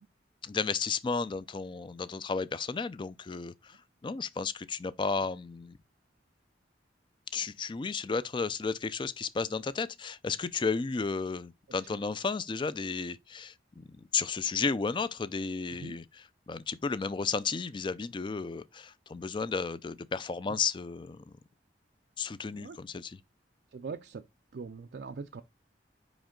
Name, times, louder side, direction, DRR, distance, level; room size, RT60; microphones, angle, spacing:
voice 1, 0.4-5.8 7.3-21.3 22.2-23.2, left 5 dB, 25° left, 0.3 m, -33 dB
voice 2, 23.7-24.2 24.5-25.4, right 5 dB, 60° right, 0.4 m, -41 dB
5.1 x 5.0 x 3.7 m
head